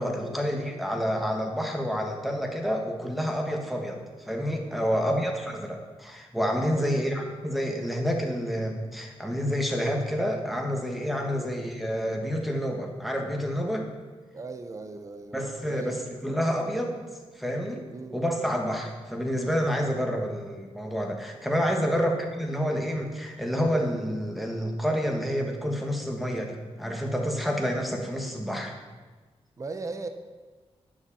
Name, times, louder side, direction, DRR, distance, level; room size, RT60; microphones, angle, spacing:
voice 1, 0.0-13.9 15.3-16.0 16.2-17.0 17.3-17.9 18.1-28.7, equal, ahead, 1 dB, 1.4 m, -28 dB
voice 2, 4.8-5.4 6.7-7.2 11.2-11.5 14.3-15.4 15.6-16.1 17.9-18.2 21.8-22.0 29.6-30.1, right 3 dB, 30° right, 7 dB, 0.8 m, -39 dB
11.0 x 7.3 x 7.0 m, 1.3 s
wide cardioid pair, 165°, 11 cm